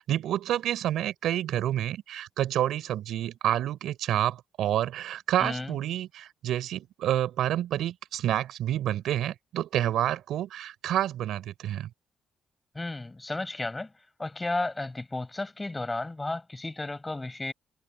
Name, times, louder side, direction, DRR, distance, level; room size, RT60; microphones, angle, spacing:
voice 1, 0.0-11.9, right 12 dB, 80° right, 3.9 m, -28 dB
voice 2, 5.4-5.8 12.7-13.9 14.2-17.5, left 2 dB, 15° left, 7.5 m, -33 dB
cardioid pair, 90°, 0 cm